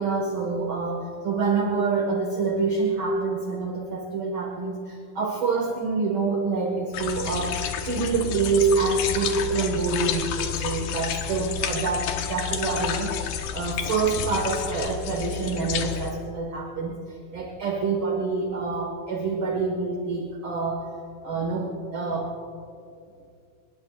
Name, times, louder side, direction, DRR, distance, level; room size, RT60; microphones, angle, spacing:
voice 1, 0.0-20.8 21.2-22.4, right 4 dB, 50° right, 0 dB, 1.8 m, -26 dB
sound 1, 6.9-16.1, left 9 dB, 90° left, 2.9 m, -30 dB
26.0 x 21.5 x 2.4 m, 2.4 s
omnidirectional pair, 4.0 m